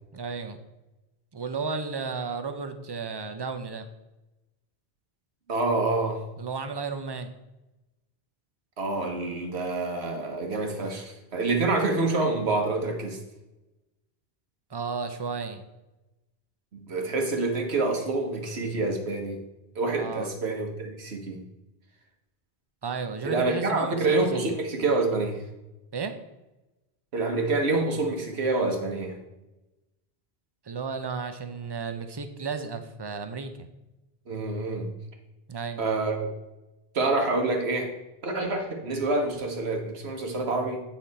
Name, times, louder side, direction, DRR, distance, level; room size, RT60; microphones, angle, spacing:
voice 1, 0.1-0.6 1.3-3.8 6.4-7.3 14.7-15.6 19.9-20.3 22.8-24.5 25.9-26.1 30.7-33.7 35.5-35.8, right 4 dB, 30° right, 8 dB, 0.5 m, -33 dB
voice 2, 5.5-6.2 8.8-13.2 16.7-19.4 19.7-21.4 23.2-25.4 27.1-29.2 34.3-34.9 35.8-36.3 36.9-37.9 38.2-40.8, right 3 dB, 85° right, 2 dB, 1.5 m, -27 dB
8.4 x 5.8 x 4.1 m, 1.0 s
omnidirectional pair, 1.1 m